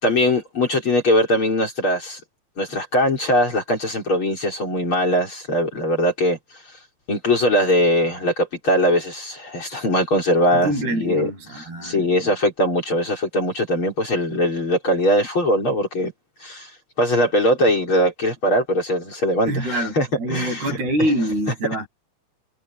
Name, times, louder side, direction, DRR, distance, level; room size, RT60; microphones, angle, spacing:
voice 1, 0.0-2.2 2.6-6.4 7.1-16.1 16.4-16.7 17.0-20.8, equal, 30° left, 5.0 m, -21 dB
voice 2, 10.5-12.3 19.5-21.9, right 1 dB, 65° right, 10.0 m, -25 dB
omnidirectional pair, 5.1 m